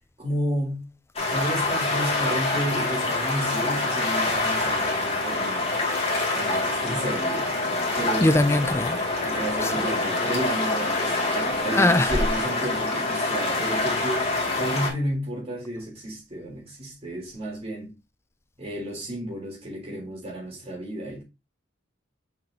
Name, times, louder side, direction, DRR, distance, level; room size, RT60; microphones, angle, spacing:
voice 1, 0.2-0.9 1.3-5.7 6.3-7.5 8.0-8.3 9.2-17.9 18.6-21.2, right 1 dB, 35° right, 3.5 m, -32 dB
sound 1, 1.1-14.9, left 2 dB, 30° left, 2.3 m, -26 dB
voice 2, 8.2-9.0 9.6-9.7 11.7-12.1, left 1 dB, 15° left, 0.4 m, -21 dB
6.6 x 6.0 x 2.8 m
head